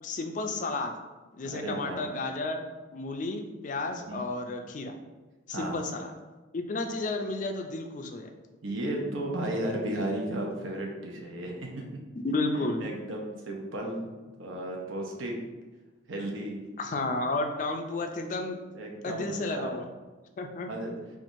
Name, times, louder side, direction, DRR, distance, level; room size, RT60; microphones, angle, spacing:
voice 1, 0.0-0.9 1.4-2.6 2.9-4.9 5.5-6.1 6.5-8.3 12.2-12.8 16.8-18.6 19.0-19.9 20.4-20.7, left 2 dB, 40° left, 4 dB, 0.3 m, -32 dB
voice 2, 1.4-2.0 3.9-4.2 5.5-5.8 8.6-11.8 12.6-14.1 14.4-15.3 16.1-16.6 18.7-19.7 20.7-20.9, right 1 dB, 85° right, 0 dB, 0.7 m, -34 dB
4.5 x 2.4 x 2.6 m, 1.2 s
head